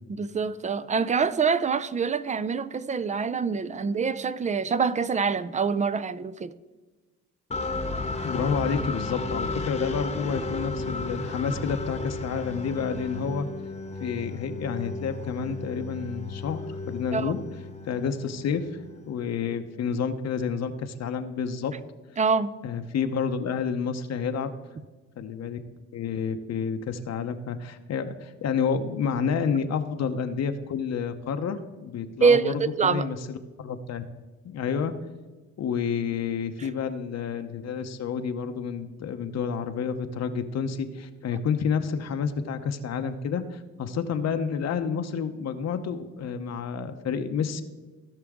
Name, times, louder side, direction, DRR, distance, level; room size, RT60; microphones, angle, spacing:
voice 1, 0.1-6.5 17.1-17.3 22.2-22.5 32.2-33.1, right 5 dB, 25° right, 0.4 m, -25 dB
sound 1, 7.5-19.3, left 3 dB, 20° left, 1.0 m, -34 dB
voice 2, 8.2-13.5 14.0-17.4 17.8-21.7 22.6-24.5 25.2-25.6 25.9-34.0 34.4-34.9 35.6-47.6, left 6 dB, 60° left, 0.8 m, -29 dB
16.5 x 5.8 x 3.6 m
cardioid pair, 90°, 30 cm